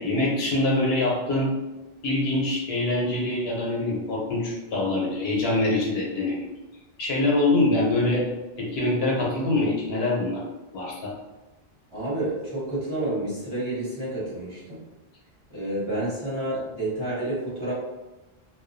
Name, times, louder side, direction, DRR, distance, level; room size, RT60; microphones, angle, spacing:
voice 1, 0.0-1.5 2.0-6.5 7.0-8.3 8.6-10.4 10.7-11.1, left 2 dB, 75° left, -2 dB, 0.9 m, -24 dB
voice 2, 11.9-14.8 15.5-17.7, right 1 dB, 30° right, -10 dB, 1.0 m, -29 dB
2.3 x 2.2 x 2.5 m, 1.1 s
omnidirectional pair, 1.1 m